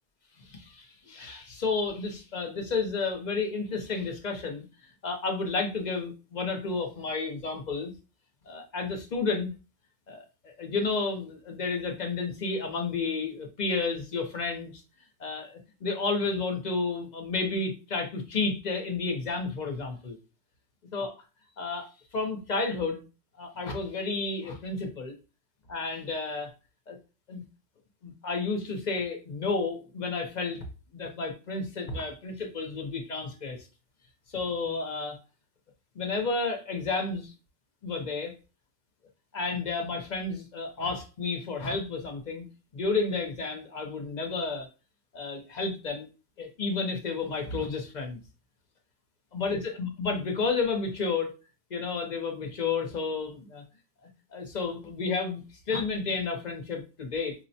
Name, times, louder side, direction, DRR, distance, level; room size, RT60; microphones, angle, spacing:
voice 1, 0.4-4.7 5.0-7.9 8.5-9.5 10.1-14.8 15.2-20.2 20.9-21.1 21.6-23.0 23.4-25.1 25.7-26.5 26.9-27.0 27.3-27.4 28.0-30.6 30.9-33.7 34.3-35.2 36.0-37.3 37.8-38.3 39.3-42.5 42.7-44.7 45.1-46.1 46.4-48.2 49.3-51.3 51.7-53.6 54.3-57.3, left 4 dB, 45° left, 3 dB, 0.6 m, -31 dB
4.6 x 2.0 x 2.7 m, 0.31 s
omnidirectional pair, 1.3 m